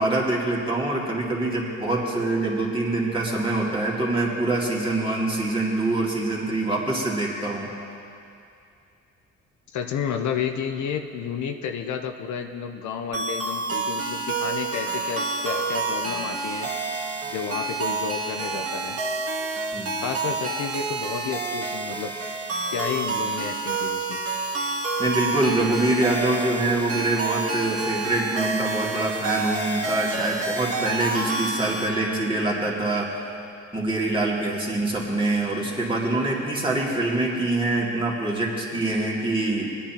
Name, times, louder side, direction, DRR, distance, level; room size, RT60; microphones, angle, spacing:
voice 1, 0.0-7.7 19.7-20.0 25.0-33.3 33.7-39.7, right 2 dB, 15° right, -4 dB, 2.4 m, -25 dB
voice 2, 9.7-16.7 17.3-19.0 20.0-22.1 22.7-24.2, left 7 dB, 70° left, 5 dB, 0.8 m, -31 dB
sound 1, 13.1-31.9, right 3 dB, 50° right, 1.7 m, -29 dB
20.5 x 10.0 x 3.0 m, 2.5 s
cardioid pair, 90°, 30 cm